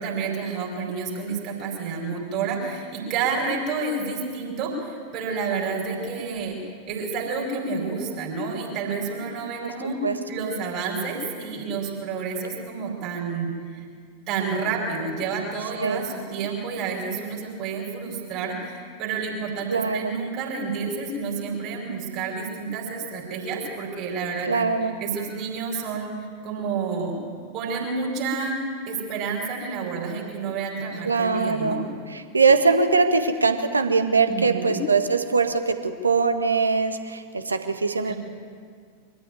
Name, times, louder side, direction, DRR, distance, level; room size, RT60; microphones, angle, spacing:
voice 1, 0.0-6.6 6.9-10.0 10.3-13.8 14.3-24.6 25.0-26.1 26.4-27.1 27.5-28.6 28.9-31.8 34.3-34.8 38.1-38.2, right 4 dB, 40° right, -1 dB, 5.2 m, -29 dB
voice 2, 19.7-20.2 24.5-24.9 31.0-38.1, right 4 dB, 75° right, 8 dB, 1.6 m, -22 dB
24.0 x 14.5 x 9.4 m, 2.1 s
figure-of-eight pair, 90°, 0 cm